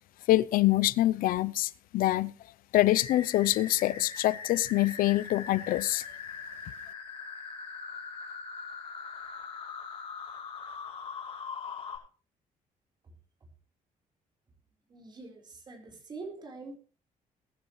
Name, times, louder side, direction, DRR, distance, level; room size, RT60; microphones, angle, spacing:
voice 1, 0.3-2.3 2.7-6.0, left 15 dB, 80° left, 0.6 m, -25 dB
sound 1, 2.8-12.0, left 5 dB, 40° left, 6.3 m, -41 dB
voice 2, 14.9-16.8, right 3 dB, 30° right, 4.2 m, -44 dB
21.5 x 11.0 x 3.2 m
cardioid pair, 170°, 14 cm